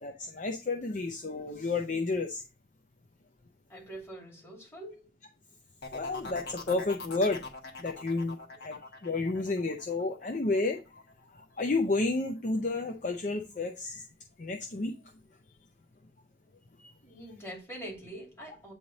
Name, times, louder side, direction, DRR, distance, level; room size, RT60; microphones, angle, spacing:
voice 1, 0.0-2.4 5.9-7.4 7.8-8.4 8.6-10.8 11.6-14.0 14.4-14.9, left 3 dB, 45° left, 0.6 m, -31 dB
voice 2, 3.7-5.1 17.0-18.7, right 1 dB, 15° left, 2.5 m, -44 dB
sound 1, 5.8-11.4 11.8-12.3, left 3 dB, 75° left, 1.3 m, -44 dB
8.6 x 3.2 x 3.9 m
head